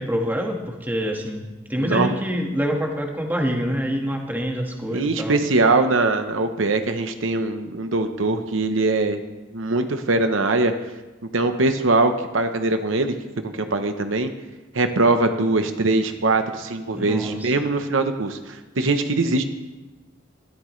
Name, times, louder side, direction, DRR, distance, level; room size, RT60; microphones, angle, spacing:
voice 1, 0.0-1.4 1.7-5.4 16.9-17.5, equal, 10° right, 1 dB, 1.6 m, -26 dB
voice 2, 1.8-2.1 4.9-9.2 9.5-10.7 11.3-13.2 13.4-14.3 14.7-19.4, right 2 dB, 75° right, 7 dB, 0.9 m, -22 dB
21.0 x 13.5 x 3.2 m, 1.1 s
head